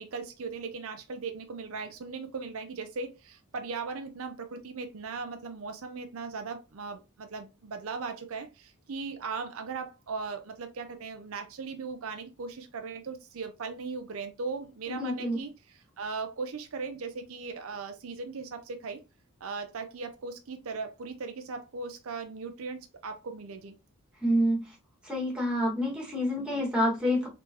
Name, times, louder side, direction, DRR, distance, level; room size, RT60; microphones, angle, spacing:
voice 1, 0.0-15.5 16.0-19.0 19.4-23.8, right 4 dB, 65° right, 0.6 m, -38 dB
voice 2, 14.9-15.4 24.2-24.6 25.0-27.3, equal, 5° right, 1.7 m, -27 dB
3.9 x 3.7 x 2.8 m
head